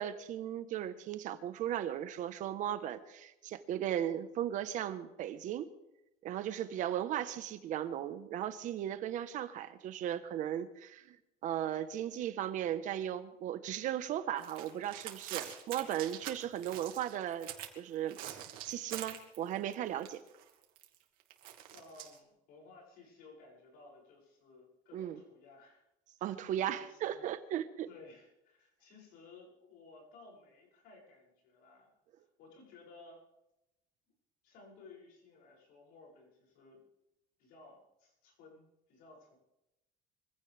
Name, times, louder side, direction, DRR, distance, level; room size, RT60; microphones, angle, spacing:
voice 1, 0.0-5.7 6.2-11.2 11.4-20.2 24.9-25.2 26.2-27.9, right 11 dB, 55° right, 11 dB, 1.4 m, -37 dB
sound 1, 14.4-17.8 18.1-19.7 20.0-22.2, right 12 dB, 75° right, 2.5 m, -45 dB
voice 2, 15.7-16.1 21.7-25.8 26.2-26.3 26.8-27.3 27.9-31.9 32.2-33.2 34.4-36.8 37.4-39.4, left 3 dB, 75° left, -1 dB, 7.4 m, -57 dB
25.0 x 15.5 x 3.6 m, 0.91 s
cardioid pair, 140°, 15 cm